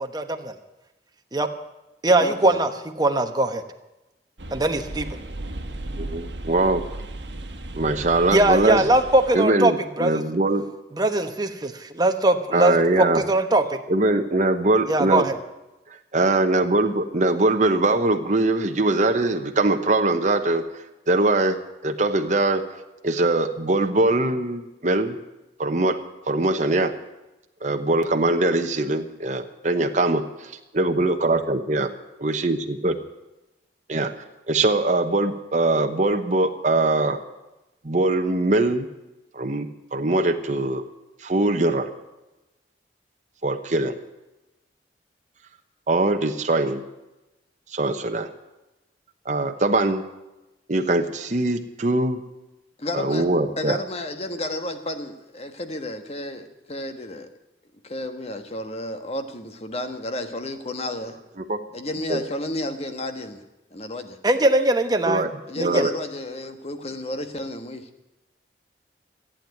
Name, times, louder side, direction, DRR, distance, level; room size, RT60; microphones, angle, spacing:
voice 1, 0.1-0.5 1.3-1.5 2.0-2.7 3.0-3.6 4.5-5.1 8.3-9.7 10.0-10.2 11.0-13.8 14.9-15.4 64.2-65.2 65.6-65.8, right 2 dB, 25° right, 6 dB, 1.1 m, -21 dB
voice 2, 2.2-2.6 52.8-53.3 53.6-57.3 57.8-61.2 61.7-63.4 63.7-64.2 65.5-67.9, left 1 dB, 35° left, 7 dB, 1.4 m, -32 dB
sound 1, 4.4-9.4, right 1 dB, 80° right, 1.3 m, -35 dB
voice 3, 6.0-6.8 7.7-8.9 9.3-10.6 12.5-13.2 13.9-15.2 16.1-21.6 21.8-22.6 23.0-25.2 25.6-26.0 26.3-26.9 27.6-31.9 32.2-33.0 33.9-34.1 34.5-37.2 37.8-38.9 39.3-40.8 41.2-41.9 43.4-44.0 45.9-46.8 47.7-48.3 49.3-50.0 50.7-52.2 52.9-53.8 61.5-61.6 62.1-62.2 65.1-65.3 65.6-65.9, right 2 dB, 45° right, 5 dB, 1.0 m, -22 dB
14.5 x 8.9 x 9.4 m, 0.99 s
head